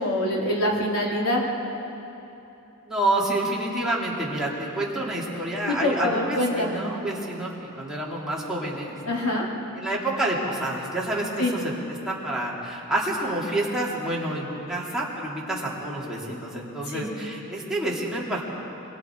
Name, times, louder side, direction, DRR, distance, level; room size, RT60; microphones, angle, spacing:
voice 1, 0.0-1.4 5.7-6.8 9.0-9.4 11.4-11.5 16.9-17.1, left 1 dB, 85° left, -3 dB, 3.4 m, -25 dB
voice 2, 2.9-9.0 9.7-18.6, right 1 dB, ahead, -6 dB, 3.2 m, -28 dB
26.0 x 22.5 x 4.8 m, 3.0 s
head